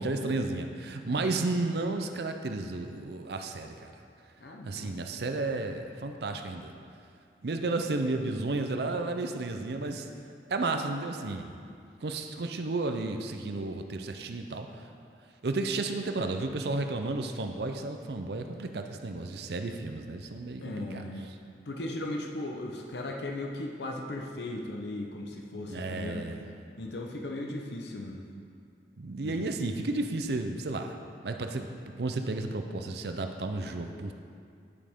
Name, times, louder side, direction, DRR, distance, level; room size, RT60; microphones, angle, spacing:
voice 1, 0.0-3.9 4.7-6.7 7.4-10.1 10.5-11.6 12.0-14.7 15.4-21.0 25.7-26.4 29.0-31.0 31.2-31.7 32.0-34.1, right 2 dB, 65° right, 6 dB, 0.5 m, -32 dB
voice 2, 4.4-5.0 20.6-21.3 21.7-26.2 26.8-28.3 29.2-29.5, left 1 dB, 70° left, 2 dB, 0.8 m, -37 dB
9.8 x 8.5 x 3.6 m, 2.3 s
head